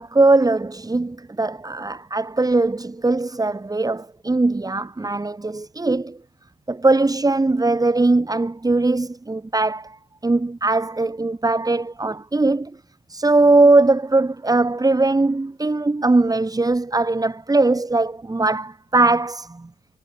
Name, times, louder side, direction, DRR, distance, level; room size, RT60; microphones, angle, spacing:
voice 1, 0.0-6.2 6.7-12.8 13.1-19.7, right 2 dB, 20° right, 7.0 m, -20 dB
cardioid pair, 90°, 20 cm